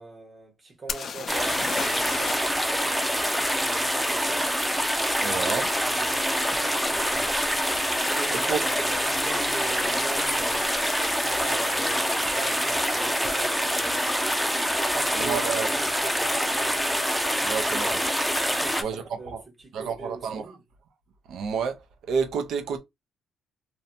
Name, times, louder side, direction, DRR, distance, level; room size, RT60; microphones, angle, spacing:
voice 1, 0.0-4.5 5.1-5.4 5.8-7.0 8.1-14.3 14.9-16.8 17.4-20.6, right 3 dB, 30° right, 1.1 m, -41 dB
sound 1, 0.9-2.6 2.9-3.0 6.4-6.5 7.1-7.3 7.6-8.2 10.2-10.3 10.6-10.7, left 6 dB, 55° left, 0.4 m, -35 dB
sound 2, 1.3-18.8, equal, ahead, 0.5 m, -25 dB
voice 2, 5.2-5.7 8.5-8.6 15.1-15.7 17.4-18.0 18.8-19.4 19.7-20.5 21.3-21.8 22.1-22.8, right 6 dB, 75° right, 0.5 m, -29 dB
2.6 x 2.2 x 2.6 m
cardioid pair, 90°, 0 cm